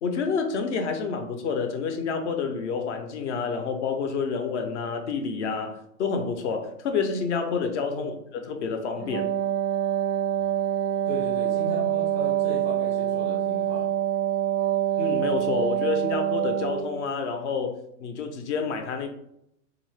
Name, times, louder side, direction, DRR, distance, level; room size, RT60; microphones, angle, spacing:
voice 1, 0.0-9.3 15.0-19.1, left 5 dB, 45° left, 6 dB, 0.6 m, -29 dB
Wind instrument woodwind instrument, 9.0-17.0, right 11 dB, 85° right, 0.6 m, -26 dB
voice 2, 11.1-13.9, right 1 dB, 10° right, -6 dB, 0.4 m, -36 dB
3.6 x 2.5 x 3.2 m, 0.76 s
hypercardioid pair, 130°, 48 cm